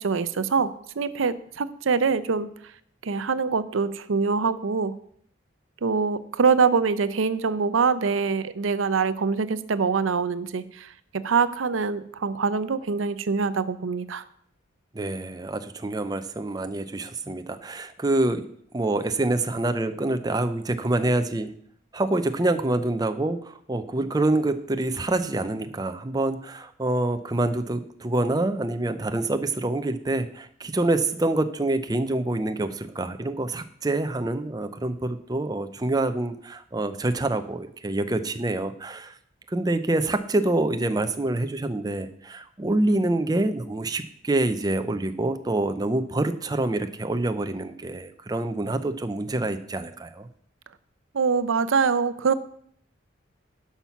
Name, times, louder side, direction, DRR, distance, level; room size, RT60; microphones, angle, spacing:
voice 1, 0.0-2.5 3.0-5.0 5.8-14.2 51.1-52.3, right 5 dB, 90° right, 14 dB, 0.6 m, -24 dB
voice 2, 14.9-18.5 18.7-21.5 21.9-39.2 39.5-50.3, right 2 dB, 20° right, 9 dB, 0.5 m, -26 dB
11.5 x 5.8 x 5.8 m, 0.64 s
head